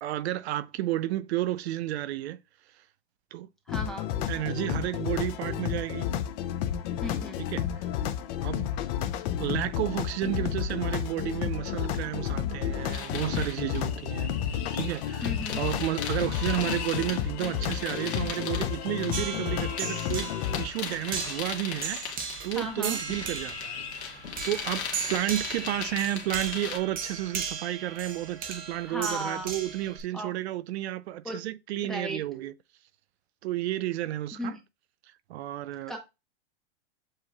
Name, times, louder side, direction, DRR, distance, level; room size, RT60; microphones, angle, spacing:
voice 1, 0.0-2.4 3.3-3.5 4.3-6.1 7.5-7.7 8.4-8.7 9.4-22.0 22.4-24.2 24.4-32.5 33.4-34.6 35.3-36.0, right 14 dB, 75° right, 0.5 m, -32 dB
sound 1, 3.7-20.7, left 10 dB, 40° left, 0.5 m, -31 dB
voice 2, 3.7-4.1 7.0-7.5 15.2-15.6 22.5-23.0 28.9-29.5 30.1-30.3 31.2-31.4 31.8-32.2 34.4-34.6 35.9-36.0, equal, ahead, 1.0 m, -35 dB
sound 2, 12.9-26.8, left 7 dB, 75° left, 1.6 m, -38 dB
sound 3, 19.1-30.0, right 6 dB, 25° right, 0.9 m, -37 dB
7.4 x 3.0 x 2.3 m
supercardioid pair, 130°, 33 cm